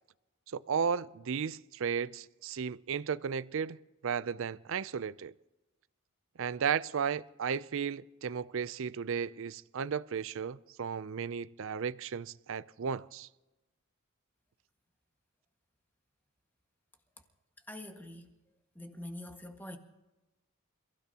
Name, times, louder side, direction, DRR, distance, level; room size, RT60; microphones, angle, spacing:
voice 1, 0.5-3.8 4.0-5.3 6.4-13.3, right 6 dB, 60° right, 0.5 m, -34 dB
voice 2, 17.7-18.3 18.7-19.8, left 1 dB, 10° left, 1.7 m, -44 dB
28.5 x 16.0 x 2.9 m
head